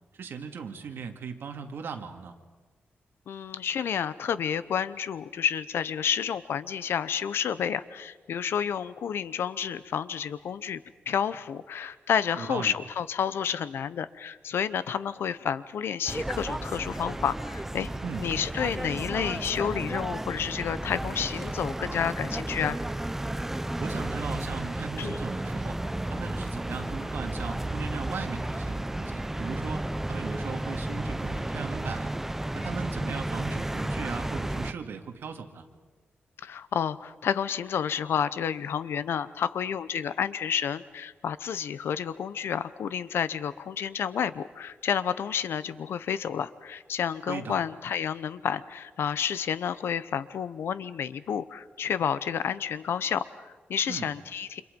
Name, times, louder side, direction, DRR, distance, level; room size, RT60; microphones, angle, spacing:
voice 1, 0.2-2.3 12.4-12.8 18.0-18.3 23.8-25.8 26.1-32.1 32.5-35.6 47.3-47.6 53.9-54.1, right 6 dB, 70° right, 4 dB, 2.2 m, -38 dB
voice 2, 3.3-10.8 11.1-17.9 18.2-22.8 25.0-25.2 36.4-54.6, left 8 dB, 85° left, 15 dB, 0.9 m, -30 dB
sound 1, 16.1-34.7, right 1 dB, 10° right, 0.6 m, -33 dB
30.0 x 27.0 x 5.3 m, 1.4 s
wide cardioid pair, 160°, 4 cm